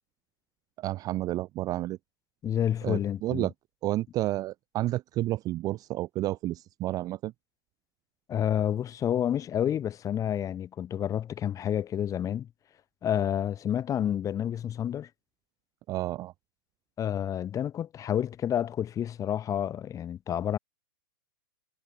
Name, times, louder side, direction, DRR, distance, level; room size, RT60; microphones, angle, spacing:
voice 1, 0.8-2.0 2.8-3.5 3.8-7.3 15.9-16.3, right 16 dB, 25° right, 0.5 m, -31 dB
voice 2, 2.4-3.5 8.3-12.5 13.0-15.1 17.0-20.6, left 10 dB, 25° left, 2.9 m, -29 dB
hypercardioid pair, 110°, 13 cm